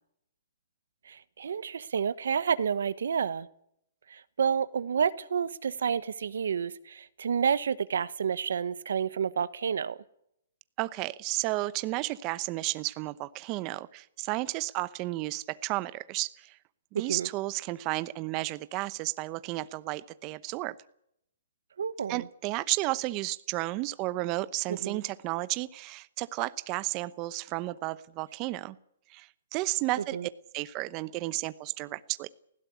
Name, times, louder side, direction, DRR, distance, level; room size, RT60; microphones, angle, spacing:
voice 1, 1.1-3.5 4.1-10.0 16.9-17.3 21.8-22.3 24.7-25.0 30.1-30.3, right 7 dB, 75° right, 1.1 m, -30 dB
voice 2, 10.8-16.6 16.9-20.7 22.1-28.8 29.1-32.3, right 19 dB, 30° right, 0.8 m, -33 dB
19.5 x 16.5 x 8.3 m
hypercardioid pair, 150°, 0 cm